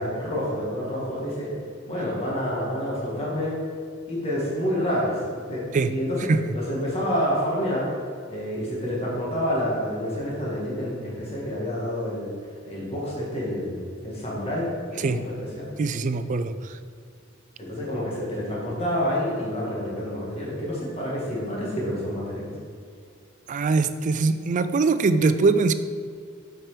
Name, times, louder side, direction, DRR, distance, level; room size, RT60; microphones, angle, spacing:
voice 1, 0.0-1.5 1.9-3.6 4.1-7.9 8.3-12.3 12.6-15.7 17.6-22.6, equal, 30° left, -6 dB, 1.9 m, -28 dB
voice 2, 15.8-16.7 23.5-25.7, right 4 dB, 40° right, 11 dB, 0.3 m, -22 dB
7.6 x 4.6 x 5.0 m, 2.2 s
head